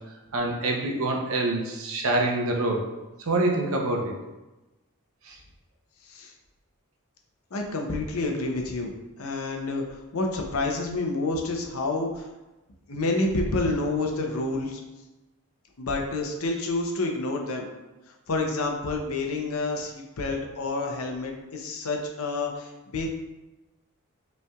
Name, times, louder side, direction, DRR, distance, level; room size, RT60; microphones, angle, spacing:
voice 1, 0.3-2.8 3.2-4.2 5.3-5.4, right 2 dB, 70° right, 0 dB, 0.7 m, -26 dB
voice 2, 7.5-12.3 12.9-14.8 15.8-17.7 18.3-23.1, left 2 dB, 75° left, 2 dB, 0.7 m, -29 dB
5.3 x 3.3 x 2.3 m, 1.1 s
head